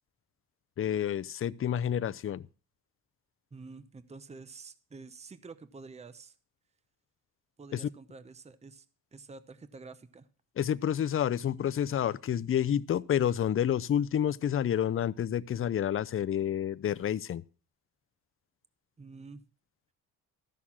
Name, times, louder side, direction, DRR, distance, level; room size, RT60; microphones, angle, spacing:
voice 1, 0.8-2.4 7.7-7.9 10.6-17.4, left 9 dB, 35° left, 0.5 m, -29 dB
voice 2, 3.5-6.4 7.6-8.9 9.1-10.3 19.0-19.4, right 4 dB, 15° right, 0.8 m, -48 dB
13.5 x 6.3 x 7.3 m
cardioid pair, 120°, 37 cm